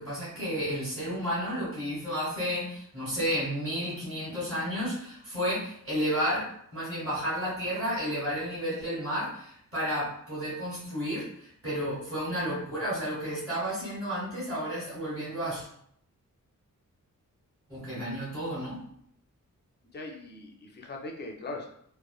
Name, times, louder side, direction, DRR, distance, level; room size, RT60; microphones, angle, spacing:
voice 1, 0.0-15.7 17.7-18.8, equal, 45° right, -10 dB, 1.5 m, -32 dB
voice 2, 19.9-21.7, left 2 dB, 35° left, 0 dB, 0.4 m, -40 dB
3.0 x 2.1 x 2.3 m, 0.67 s
wide cardioid pair, 180°, 32 cm